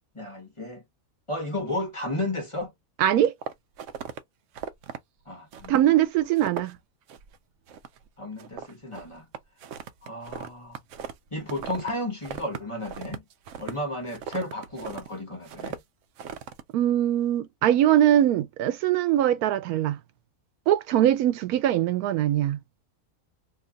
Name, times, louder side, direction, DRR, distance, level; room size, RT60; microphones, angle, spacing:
voice 1, 0.1-0.8 1.3-2.7 5.3-6.0 8.2-9.3 10.0-10.8 11.3-13.2 13.6-15.8, left 1 dB, 25° left, 1.0 m, -33 dB
voice 2, 3.0-3.3 5.7-6.8 16.7-20.0 20.7-22.6, right 12 dB, 90° right, 1.1 m, -22 dB
sound 1, 3.2-4.2 4.5-5.0 5.5-5.9 6.2-6.8 7.1-7.4 7.7-8.1 8.4-11.9 12.2-15.1 15.5-15.8 16.2-16.6, right 7 dB, 65° right, 0.8 m, -38 dB
2.8 x 2.3 x 3.7 m
omnidirectional pair, 1.5 m